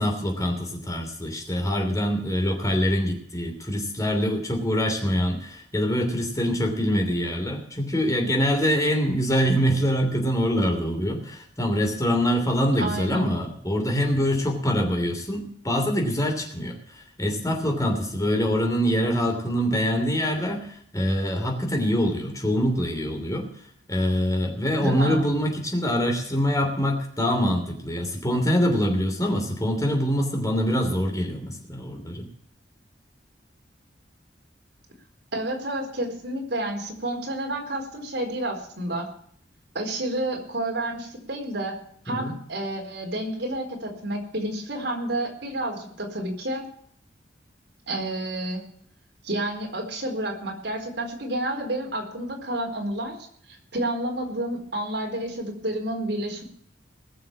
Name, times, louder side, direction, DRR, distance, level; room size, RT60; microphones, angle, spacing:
voice 1, 0.0-23.5 23.9-32.3 42.1-42.3, equal, 20° left, 3 dB, 3.1 m, -24 dB
voice 2, 12.8-13.3 24.8-25.2 35.3-39.1 39.7-41.8 42.0-46.6 47.9-48.6 49.2-53.2 53.5-56.4, right 1 dB, 65° right, 1 dB, 4.4 m, -30 dB
20.0 x 6.7 x 7.2 m, 0.63 s
head